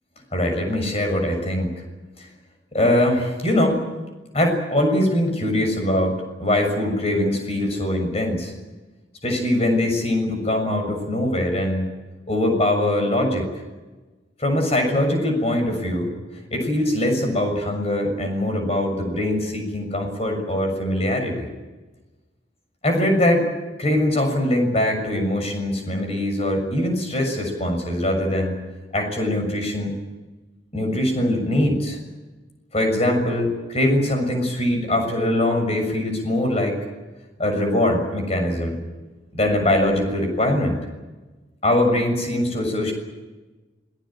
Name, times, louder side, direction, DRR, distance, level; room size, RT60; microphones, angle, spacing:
voice 1, 0.3-1.7 2.7-3.8 4.3-8.5 9.2-11.9 12.3-13.5 14.4-16.1 16.5-21.5 22.8-23.5 23.8-28.5 28.9-29.9 30.7-32.0 32.7-36.8 37.4-38.8 39.3-40.8 41.6-42.9, left 1 dB, 35° left, 4 dB, 6.8 m, -22 dB
27.0 x 18.5 x 9.0 m, 1.2 s
head